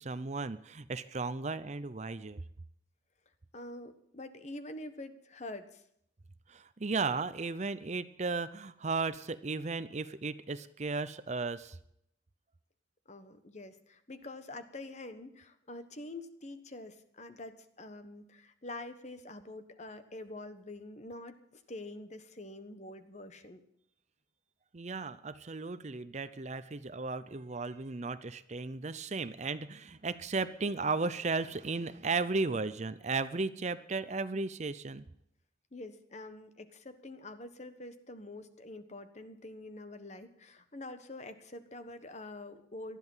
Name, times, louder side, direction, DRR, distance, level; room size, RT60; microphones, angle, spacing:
voice 1, 0.0-2.4 6.5-11.8 24.7-35.0, right 4 dB, 40° right, 14 dB, 0.6 m, -35 dB
voice 2, 3.5-5.8 13.1-23.6 35.7-43.0, left 2 dB, 40° left, 10 dB, 1.3 m, -46 dB
19.0 x 13.0 x 5.6 m, 0.72 s
head